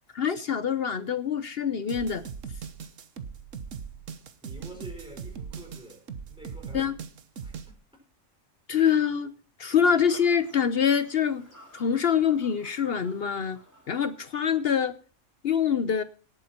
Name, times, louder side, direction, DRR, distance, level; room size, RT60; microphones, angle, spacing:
voice 1, 0.1-2.2 6.7-6.9 8.7-9.3 9.6-11.5 11.7-13.6 13.9-14.9 15.4-16.0, left 7 dB, 55° left, 0.9 m, -25 dB
sound 1, 1.9-7.7, right 6 dB, 70° right, 1.4 m, -40 dB
voice 2, 4.4-6.9 7.4-7.8 9.7-10.0, right 1 dB, 5° right, 5.2 m, -47 dB
Fowl / Bird vocalization bird call bird song, 9.9-14.9, equal, 15° left, 5.7 m, -55 dB
18.0 x 8.8 x 4.3 m
omnidirectional pair, 1.3 m